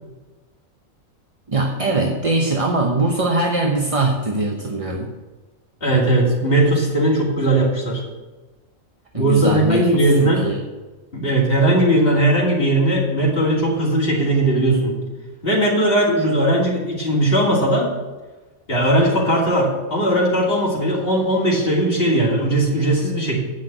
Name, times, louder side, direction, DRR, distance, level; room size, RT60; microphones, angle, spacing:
voice 1, 1.5-5.1 9.1-10.6, right 2 dB, 30° right, 1 dB, 0.8 m, -22 dB
voice 2, 5.8-8.0 9.1-10.4 11.1-15.0 15.4-17.9 18.7-23.4, right 1 dB, 45° left, -3 dB, 2.7 m, -18 dB
8.8 x 5.9 x 7.8 m, 1.2 s
omnidirectional pair, 1.4 m